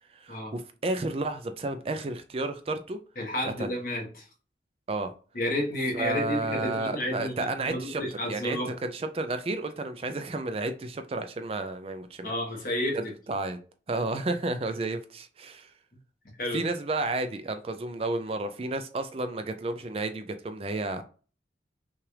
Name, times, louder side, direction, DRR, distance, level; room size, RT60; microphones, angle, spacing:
voice 1, 0.1-3.0 3.4-3.7 4.9-5.1 5.9-12.3 12.9-13.6 13.9-15.7 16.5-21.0, right 2 dB, 30° right, 0.4 m, -32 dB
voice 2, 3.2-4.3 5.3-8.7 12.2-13.1 16.4-16.6, left 1 dB, 50° left, 1.3 m, -31 dB
5.8 x 2.4 x 3.2 m
head